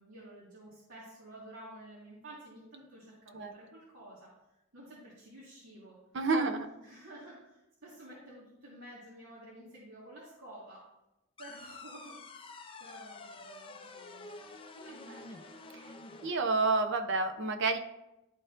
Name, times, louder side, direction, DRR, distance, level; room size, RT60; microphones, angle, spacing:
voice 1, 0.0-6.0 6.8-10.8 11.4-15.4, right 1 dB, 80° right, -8 dB, 1.9 m, -52 dB
voice 2, 6.1-6.7 16.2-17.8, right 3 dB, 60° right, 7 dB, 0.6 m, -29 dB
sound 1, 11.4-16.4, left 3 dB, 25° left, 0.5 m, -48 dB
11.5 x 4.3 x 2.5 m, 0.95 s
head